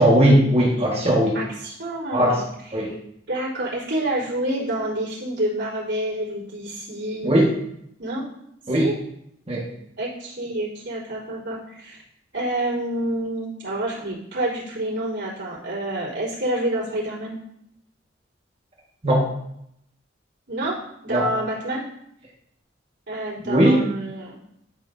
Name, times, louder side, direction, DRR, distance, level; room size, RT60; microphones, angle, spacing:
voice 1, 0.0-1.4 2.1-2.4 2.7-2.9 7.2-7.5 8.7-8.9 9.5-9.6 19.0-19.3 21.1-21.3 23.4-23.8, right 1 dB, 35° right, -3 dB, 1.7 m, -18 dB
voice 2, 1.3-2.4 2.7-3.0 3.3-7.3 8.0-8.3 8.7-9.0 10.0-12.0 12.3-17.4 20.5-21.9 23.1-24.4, right 1 dB, 80° right, -10 dB, 3.7 m, -28 dB
12.0 x 6.6 x 2.7 m, 0.75 s
head